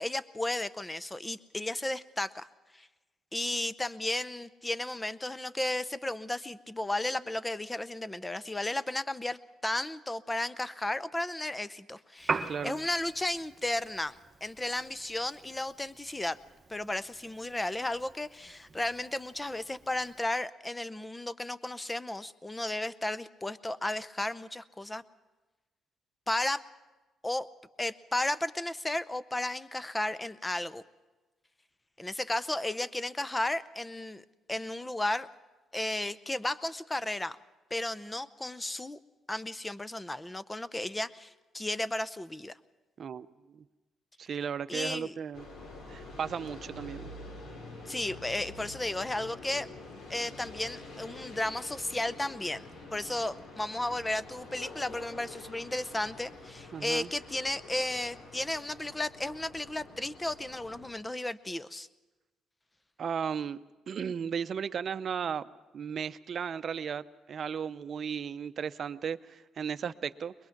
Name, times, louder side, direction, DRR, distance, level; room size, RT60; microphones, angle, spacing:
voice 1, 0.0-2.5 2.7-2.9 3.3-16.4 16.7-25.0 26.3-26.6 27.2-27.5 27.8-30.8 32.0-34.2 34.5-35.3 35.7-37.4 37.7-39.0 39.3-42.6 44.7-45.1 47.7-49.7 50.1-61.9, left 1 dB, 15° left, 16 dB, 0.7 m, -34 dB
Piano, 12.2-20.2, right 4 dB, 35° right, 1.1 m, -42 dB
voice 2, 12.5-12.8 43.0-43.6 44.2-45.5 45.9-47.1 56.7-57.1 63.0-63.6 63.9-65.4 65.7-70.3, right 7 dB, 55° right, 13 dB, 0.6 m, -35 dB
sound 1, 45.3-60.9, left 2 dB, 70° left, 4.3 m, -47 dB
22.5 x 21.0 x 5.9 m, 1.2 s
cardioid pair, 90°, 0 cm